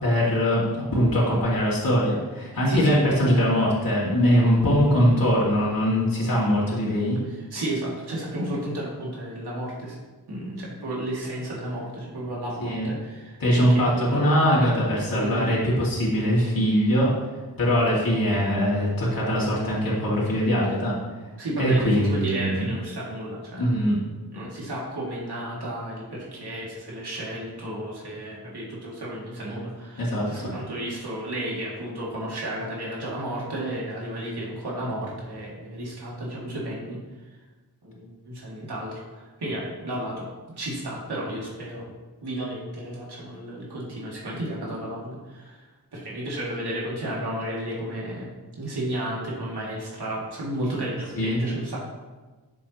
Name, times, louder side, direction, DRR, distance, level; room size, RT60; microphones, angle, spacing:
voice 1, 0.0-7.2 12.6-12.9 13.4-17.1 17.6-21.0 21.6-22.7 23.6-24.0 30.0-30.3 51.2-51.4, equal, 60° left, -6 dB, 2.5 m, -22 dB
voice 2, 2.7-3.0 7.3-10.0 10.3-14.3 15.0-15.5 21.4-23.8 24.3-37.0 37.8-40.3 40.6-41.9 42.2-45.6 45.9-48.3 48.6-51.8, right 1 dB, 80° right, -5 dB, 2.6 m, -32 dB
12.0 x 7.3 x 3.1 m, 1.3 s
wide cardioid pair, 125°, 39 cm